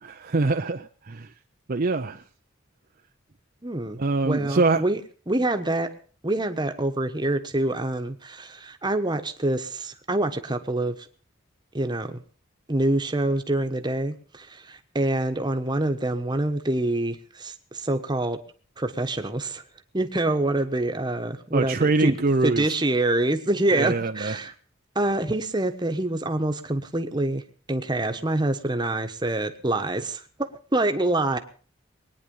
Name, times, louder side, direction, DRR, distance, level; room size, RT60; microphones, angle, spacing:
voice 1, 0.0-1.3 1.7-2.2 4.0-4.8 21.5-22.7 23.7-24.4, right 3 dB, 45° right, 6 dB, 0.6 m, -24 dB
voice 2, 3.6-4.0 4.2-5.0 5.3-5.9 6.2-10.9 11.7-12.2 12.7-18.4 18.8-19.6 19.9-22.1 22.4-24.5 24.9-27.4 27.7-31.4, right 2 dB, 20° right, 7 dB, 1.2 m, -26 dB
21.5 x 9.8 x 5.5 m, 0.41 s
head